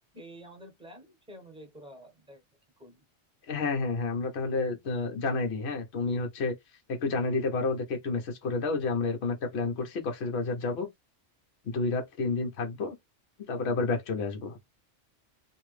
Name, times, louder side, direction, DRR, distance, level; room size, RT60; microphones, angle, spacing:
voice 1, 0.1-2.4 2.8-3.0, right 1 dB, 5° right, 1.1 m, -49 dB
voice 2, 3.5-6.5 6.9-10.9 11.6-12.9 13.5-14.6, left 3 dB, 65° left, 1.1 m, -30 dB
3.0 x 2.6 x 3.1 m
omnidirectional pair, 1.2 m